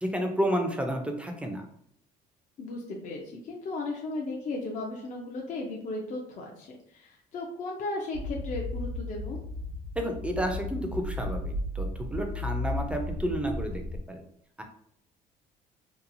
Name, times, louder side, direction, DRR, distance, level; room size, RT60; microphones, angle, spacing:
voice 1, 0.0-1.7 10.0-14.2 14.6-14.7, equal, 5° right, 4 dB, 0.4 m, -31 dB
voice 2, 2.6-9.4, left 2 dB, 50° left, -1 dB, 0.5 m, -36 dB
sound 1, 8.1-14.0, left 2 dB, 70° right, 0.9 m, -34 dB
2.8 x 2.2 x 2.6 m, 0.69 s
cardioid pair, 110°, 17 cm